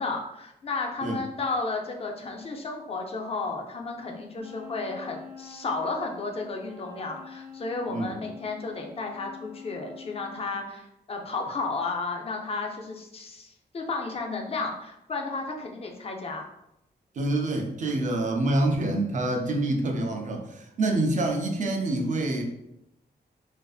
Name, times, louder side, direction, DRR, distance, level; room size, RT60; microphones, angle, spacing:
voice 1, 0.0-16.5, left 3 dB, 35° left, 1 dB, 0.4 m, -33 dB
Wind instrument woodwind instrument, 4.4-10.5, left 4 dB, 70° right, 0.8 m, -46 dB
voice 2, 17.2-22.4, right 2 dB, 45° right, 2 dB, 0.4 m, -26 dB
2.5 x 2.4 x 2.3 m, 0.84 s
wide cardioid pair, 150°, 18 cm